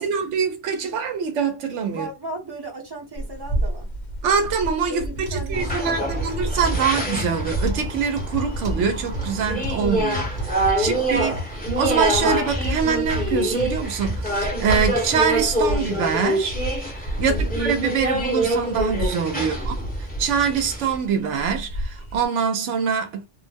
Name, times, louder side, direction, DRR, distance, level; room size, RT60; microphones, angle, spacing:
voice 1, 0.0-2.1 4.2-11.4 11.8-16.6 17.2-23.2, right 6 dB, 85° right, 0.9 m, -24 dB
voice 2, 1.9-3.9 4.9-6.6 6.8-7.0 10.7-11.2 17.1-17.6 19.4-19.7, right 2 dB, 25° right, 0.8 m, -37 dB
sound 1, 3.2-22.3, right 1 dB, 45° left, 0.8 m, -32 dB
sound 2, 5.2-14.3 14.8-15.0 15.6-15.7, equal, 45° right, 1.0 m, -32 dB
sound 3, 5.5-21.0, right 1 dB, 10° left, 0.8 m, -26 dB
2.4 x 2.0 x 3.3 m
omnidirectional pair, 1.2 m